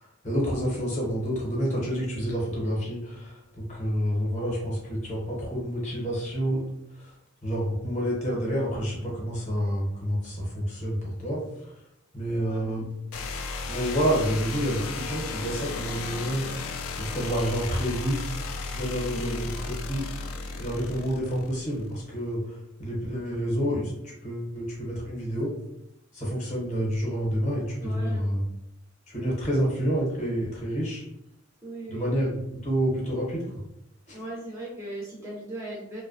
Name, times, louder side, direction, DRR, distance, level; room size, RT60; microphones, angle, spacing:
voice 1, 0.2-6.6 6.9-7.1 7.4-11.7 12.1-12.9 13.7-18.2 18.7-20.1 20.5-25.5 26.1-28.4 29.1-31.0 31.9-33.4 34.1-34.2, equal, 35° left, -3 dB, 0.8 m, -29 dB
voice 2, 12.3-12.8 19.1-19.4 27.8-28.3 31.6-32.1 34.1-36.0, right 1 dB, 15° right, -4 dB, 0.3 m, -39 dB
sound 1, 13.1-21.9, left 4 dB, 85° left, 0.3 m, -34 dB
2.5 x 2.1 x 2.5 m, 0.80 s
head